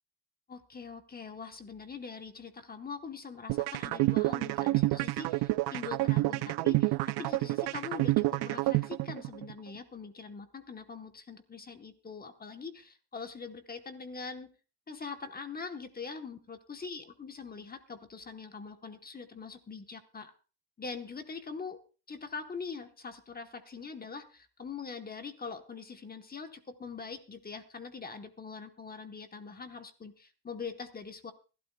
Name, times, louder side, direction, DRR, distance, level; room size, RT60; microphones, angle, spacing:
voice 1, 0.5-14.5 14.9-20.3 20.8-21.8 22.1-31.3, left 5 dB, 20° left, 7 dB, 1.1 m, -43 dB
sound 1, 3.5-9.5, right 20 dB, 60° right, 0.5 m, -28 dB
24.0 x 12.5 x 2.3 m, 0.35 s
cardioid pair, 125°, 46 cm